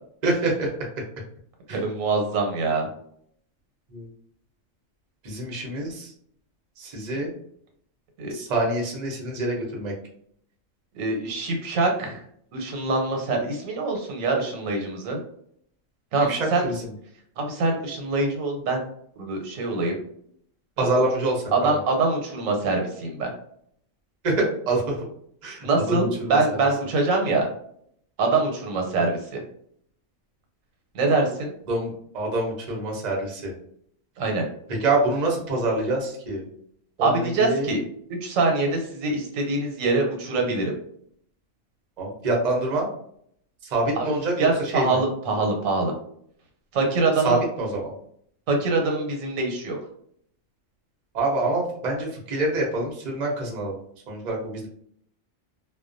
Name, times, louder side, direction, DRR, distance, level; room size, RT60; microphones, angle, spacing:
voice 1, 0.2-0.7 1.7-1.8 3.9-4.1 5.2-6.1 6.8-7.3 8.3-9.9 16.3-16.9 20.8-21.8 24.2-25.0 25.4-26.6 31.7-33.5 34.8-36.4 37.0-37.7 42.0-42.9 43.6-45.0 47.2-47.9 51.1-53.8 54.1-54.7, right 2 dB, 45° right, -1 dB, 0.6 m, -26 dB
voice 2, 1.7-2.9 8.2-8.3 10.9-12.2 12.5-15.2 16.1-16.6 17.4-18.8 19.2-20.0 20.8-20.9 21.5-23.3 25.6-27.5 28.2-29.4 30.9-31.5 34.2-34.5 37.0-37.8 38.2-40.7 43.9-44.1 44.4-45.9 46.7-47.4 48.5-49.8, right 3 dB, 80° right, 2 dB, 1.1 m, -24 dB
2.3 x 2.2 x 2.5 m, 0.66 s
omnidirectional pair, 1.4 m